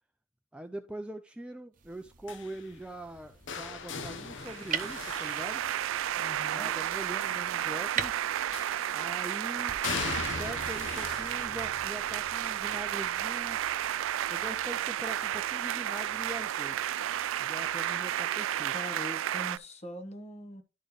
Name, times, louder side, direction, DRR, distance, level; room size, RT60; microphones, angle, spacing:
voice 1, 0.5-5.6 6.5-8.3 8.9-9.8 10.2-13.6 14.3-17.0 17.4-18.7, right 1 dB, 5° right, 0.4 m, -42 dB
sound 1, 1.7-9.8, right 7 dB, 45° right, 0.8 m, -42 dB
sound 2, 2.3-6.3 8.5-9.1 9.8-15.6 16.0-16.4 17.6-17.7, left 5 dB, 65° left, 0.8 m, -41 dB
sound 3, 4.4-19.6, right 11 dB, 75° right, 0.3 m, -32 dB
voice 2, 6.2-6.7 18.7-20.6, left 1 dB, 35° left, 1.2 m, -42 dB
11.5 x 4.3 x 3.2 m
head